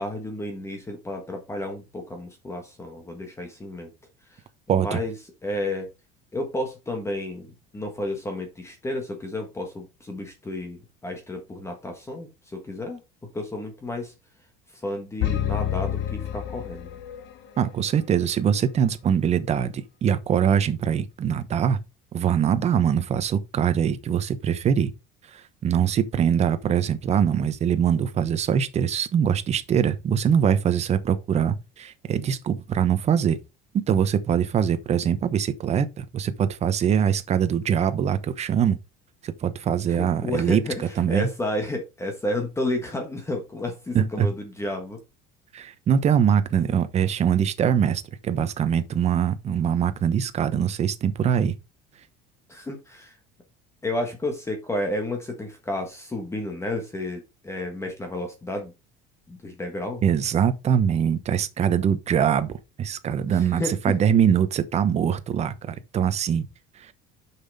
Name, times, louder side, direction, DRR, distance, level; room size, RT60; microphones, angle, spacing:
voice 1, 0.0-3.9 4.2-4.4 4.7-5.1 5.4-5.9 6.3-14.1 14.7-17.0 39.9-45.0 52.5-53.2 53.8-58.7 59.3-60.0 63.3-63.9, left 1 dB, 15° left, 1.4 m, -31 dB
voice 2, 4.7-5.0 17.6-21.8 22.1-24.9 25.3-33.4 33.7-38.8 39.2-41.3 43.9-44.3 45.5-51.5 60.0-66.5 66.8-66.9, right 8 dB, 30° right, 0.9 m, -23 dB
sound 1, 15.2-17.3, left 11 dB, 55° left, 1.1 m, -28 dB
6.8 x 5.9 x 4.1 m
cardioid pair, 140°, 21 cm